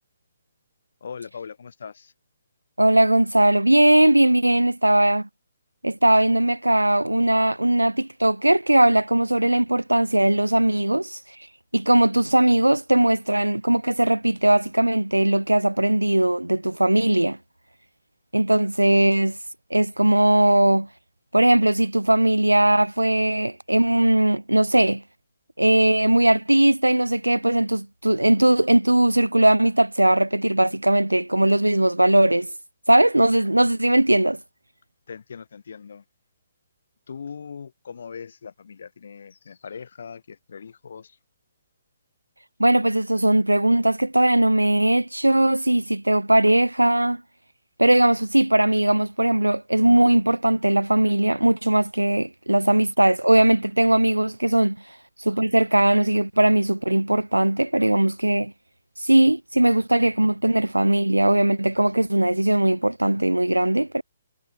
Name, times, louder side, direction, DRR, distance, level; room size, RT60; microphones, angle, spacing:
voice 1, 1.0-2.1 35.1-36.0 37.1-41.2, left 6 dB, 55° left, 5.9 m, -40 dB
voice 2, 2.8-5.3 5.8-11.2 11.7-17.4 18.3-19.4 19.7-20.9 21.3-25.0 25.6-32.5 32.9-34.4 42.6-47.2 47.8-54.8 55.2-58.5 59.0-64.0, right 1 dB, 85° right, 0.9 m, -19 dB
figure-of-eight pair, 130°, 0 cm